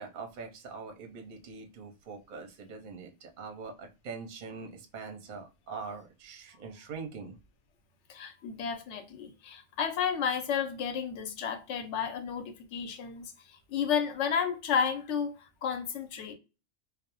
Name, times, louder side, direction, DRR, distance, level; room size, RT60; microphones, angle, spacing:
voice 1, 0.0-7.4, right 4 dB, 55° right, 0.6 m, -43 dB
voice 2, 8.1-16.3, left 7 dB, 75° left, 0.9 m, -32 dB
2.3 x 2.0 x 2.8 m
omnidirectional pair, 1.3 m